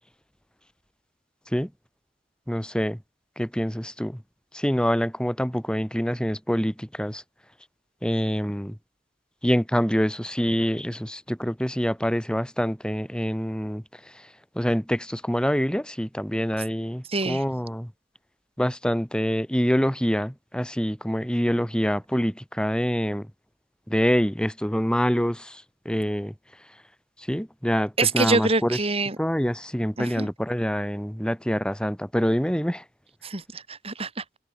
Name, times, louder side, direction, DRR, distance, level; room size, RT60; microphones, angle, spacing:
voice 1, 2.5-3.0 3.4-4.2 4.5-7.2 8.0-8.8 9.4-13.8 14.6-17.9 18.6-23.3 23.9-26.3 27.3-28.8 29.2-32.8, equal, 5° left, 4.2 m, -26 dB
voice 2, 17.1-17.4 28.0-29.2 30.0-30.3 33.2-34.2, right 3 dB, 35° right, 2.9 m, -25 dB
head